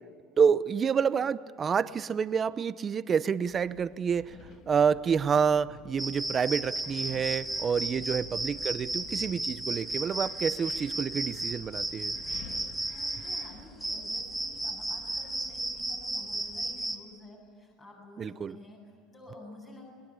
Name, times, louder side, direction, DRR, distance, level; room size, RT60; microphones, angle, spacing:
voice 1, 0.4-4.3 4.7-12.1 18.2-18.6, right 6 dB, 25° right, 15 dB, 0.8 m, -28 dB
Wind, 3.4-16.1, left 5 dB, 50° left, 2.3 m, -52 dB
sound 1, 6.0-17.0, right 2 dB, ahead, 1.9 m, -34 dB
voice 2, 7.5-7.9 12.8-19.9, left 2 dB, 30° left, -2 dB, 7.2 m, -51 dB
29.5 x 21.5 x 8.4 m, 2.1 s
cardioid pair, 145°, 0 cm